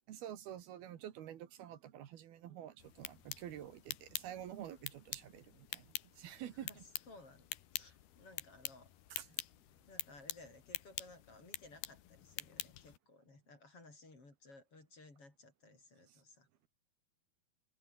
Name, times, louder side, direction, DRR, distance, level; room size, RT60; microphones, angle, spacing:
voice 1, 0.1-6.8 9.1-9.4 16.1-16.2, right 11 dB, 75° right, 3.6 m, -49 dB
sound 1, 2.8-13.0, left 13 dB, 80° left, 3.5 m, -47 dB
voice 2, 6.5-8.9 9.3-9.4 9.9-16.5, left 2 dB, 35° left, 7.4 m, -59 dB
omnidirectional pair, 4.5 m